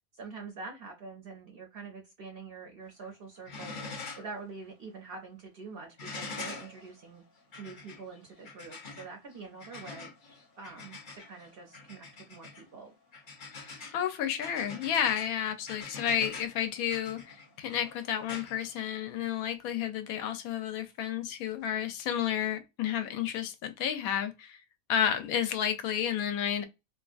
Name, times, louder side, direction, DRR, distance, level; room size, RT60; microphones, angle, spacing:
voice 1, 0.1-7.2 7.6-10.1 10.6-13.0, right 4 dB, 60° right, 0.6 m, -45 dB
sound 1, 2.8-3.1 3.4-4.4 4.7-4.8 6.0-19.4 20.8-20.9, left 4 dB, 45° left, 0.7 m, -45 dB
voice 2, 13.9-24.6 24.9-26.6, left 9 dB, 85° left, 1.0 m, -31 dB
2.7 x 2.3 x 2.3 m
omnidirectional pair, 1.5 m